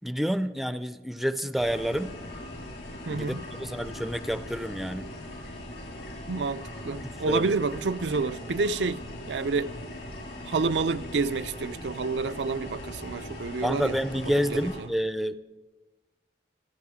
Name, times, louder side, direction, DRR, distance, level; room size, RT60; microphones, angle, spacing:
voice 1, 0.0-2.2 3.1-5.1 7.0-7.5 13.6-15.4, equal, ahead, 0.5 m, -29 dB
sound 1, 1.6-14.8, left 1 dB, 75° left, 7.3 m, -40 dB
voice 2, 3.1-3.4 6.3-9.7 10.4-14.0 14.5-14.9, right 4 dB, 80° right, 0.6 m, -29 dB
27.5 x 10.5 x 4.9 m
head